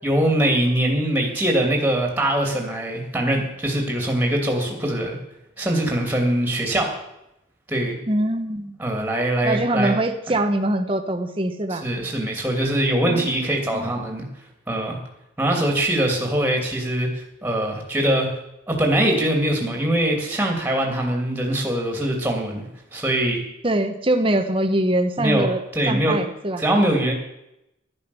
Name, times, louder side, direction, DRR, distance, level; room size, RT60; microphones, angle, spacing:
voice 1, 0.0-5.2 5.6-6.9 7.7-8.0 8.8-9.9 11.7-14.2 14.7-15.0 15.4-18.3 18.7-22.6 22.9-23.4 25.2-26.2 26.6-27.1, right 1 dB, 10° right, 1 dB, 2.6 m, -22 dB
voice 2, 8.1-8.8 9.4-11.9 13.0-13.9 23.6-25.6 25.9-26.6, right 1 dB, 25° right, 5 dB, 1.0 m, -23 dB
11.0 x 10.5 x 7.0 m, 0.84 s
head